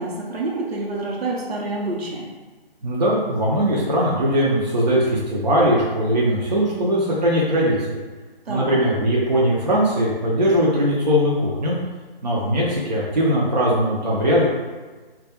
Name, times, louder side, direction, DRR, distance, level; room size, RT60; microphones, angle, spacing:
voice 1, 0.0-2.3 8.5-8.8, right 2 dB, 85° right, -2 dB, 0.7 m, -27 dB
voice 2, 2.8-8.0 8.5-11.8 12.2-14.4, equal, 45° right, -5 dB, 0.4 m, -20 dB
2.2 x 2.1 x 2.8 m, 1.3 s
hypercardioid pair, 180°, 30 cm